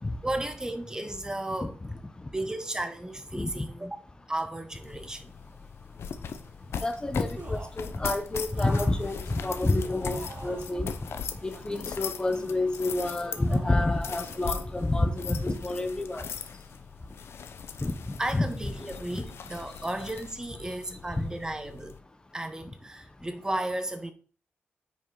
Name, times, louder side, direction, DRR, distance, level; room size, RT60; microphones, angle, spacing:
voice 1, 0.2-1.8 2.3-4.0 4.3-5.3 18.2-22.0 22.3-24.1, right 1 dB, 15° right, 1.0 m, -34 dB
voice 2, 3.3-3.7 6.2-6.3 6.8-16.3 17.8-18.5 19.1-19.2 21.1-21.3, left 2 dB, 20° left, 0.9 m, -29 dB
sound 1, 4.8-22.0, left 6 dB, 75° left, 0.8 m, -40 dB
sound 2, 7.3-7.9 8.5-10.8 11.5-12.6 13.2-14.0 14.3-14.5, right 3 dB, 35° right, 1.6 m, -46 dB
9.2 x 6.2 x 3.9 m
wide cardioid pair, 105°, 4 cm